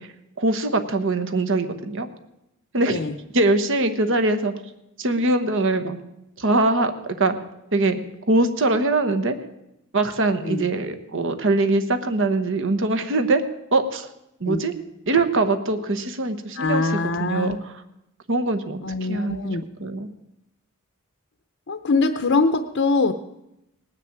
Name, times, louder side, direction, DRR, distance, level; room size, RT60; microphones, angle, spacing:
voice 1, 0.0-2.1 2.7-3.1 3.3-4.5 5.0-6.0 6.4-7.4 7.7-8.0 8.3-9.4 9.9-13.4 13.7-14.1 14.4-14.7 15.1-17.8 18.3-18.8 19.1-19.5 19.8-20.1, right 2 dB, 60° right, 9 dB, 1.1 m, -22 dB
voice 2, 16.6-17.6 18.8-19.6 21.7-23.1, left 3 dB, 55° left, 7 dB, 0.7 m, -23 dB
19.0 x 6.6 x 8.8 m, 0.85 s
head